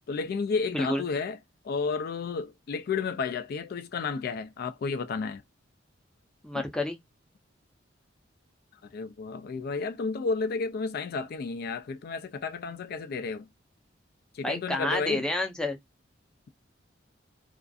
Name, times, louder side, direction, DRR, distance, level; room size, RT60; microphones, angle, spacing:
voice 1, 0.1-1.4 1.6-5.4 6.5-6.6 8.8-13.5 14.3-15.3, left 4 dB, 55° left, 0.3 m, -32 dB
voice 2, 6.4-7.0 14.4-15.8, left 1 dB, 5° left, 0.6 m, -29 dB
2.4 x 2.4 x 2.3 m
head